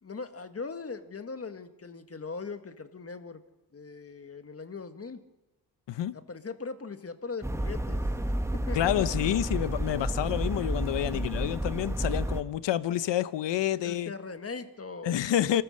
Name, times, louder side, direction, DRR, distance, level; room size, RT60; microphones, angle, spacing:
voice 1, 0.0-3.4 3.7-5.2 6.1-8.0 8.5-8.9 11.1-11.2 13.7-15.6, left 4 dB, 35° left, 1.7 m, -40 dB
sound 1, 7.4-12.4, right 1 dB, 5° right, 1.2 m, -31 dB
voice 2, 8.7-14.1 15.0-15.6, left 12 dB, 85° left, 0.8 m, -28 dB
28.5 x 14.5 x 6.5 m
cardioid pair, 95°, 42 cm